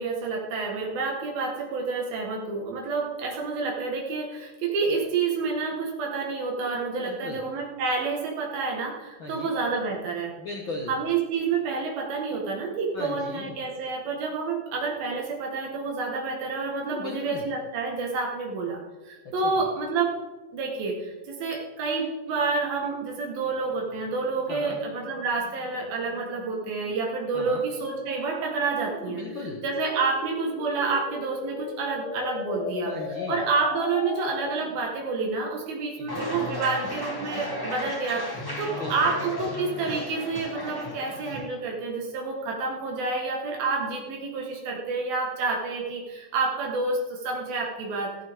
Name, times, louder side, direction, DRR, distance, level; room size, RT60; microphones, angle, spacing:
voice 1, 0.0-10.3 10.9-20.2 20.5-29.2 29.6-32.9 33.3-48.2, right 4 dB, 75° right, 0 dB, 3.2 m, -29 dB
voice 2, 6.9-7.4 9.2-9.5 10.4-11.0 12.9-13.5 16.8-17.5 19.2-19.7 24.5-24.8 27.3-27.6 29.0-29.6 32.8-33.4 36.0-36.2 38.7-39.2, left 2 dB, 85° left, 0 dB, 1.0 m, -37 dB
sound 1, 23.5-34.8, left 5 dB, 65° left, 2.7 m, -38 dB
sound 2, 36.1-41.4, left 1 dB, 35° left, 0.3 m, -34 dB
15.0 x 14.5 x 3.5 m, 1.2 s
omnidirectional pair, 4.3 m